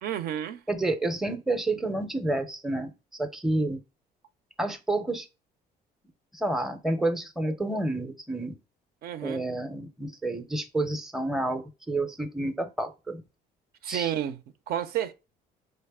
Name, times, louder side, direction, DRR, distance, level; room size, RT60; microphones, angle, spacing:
voice 1, 0.0-0.6 9.0-9.5 13.8-14.4 14.7-15.1, right 10 dB, 65° right, 0.5 m, -30 dB
voice 2, 0.7-2.9 3.2-3.8 4.6-5.3 6.3-8.6 9.2-13.2 13.9-14.1, right 2 dB, ahead, 0.5 m, -29 dB
4.0 x 3.3 x 3.4 m
cardioid pair, 110°, 17 cm